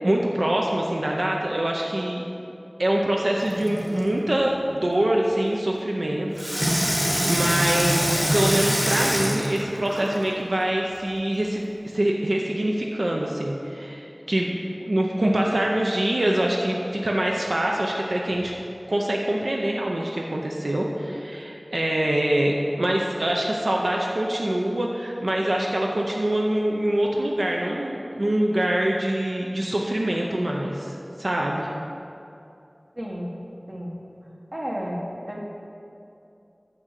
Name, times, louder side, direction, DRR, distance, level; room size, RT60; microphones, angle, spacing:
voice 1, 0.0-2.2 2.8-6.3 6.5-11.6 11.9-18.5 18.9-31.7, right 1 dB, 90° right, -1 dB, 0.6 m, -24 dB
Water tap faucet / Sink (filling or washing), 3.4-4.1 6.4-10.3 11.0-11.1, equal, 20° right, 1.5 m, -25 dB
voice 2, 32.9-33.4 33.7-34.0 34.5-35.4, equal, 45° right, -2 dB, 1.4 m, -32 dB
6.3 x 6.2 x 7.4 m, 2.7 s
wide cardioid pair, 40°, 0 cm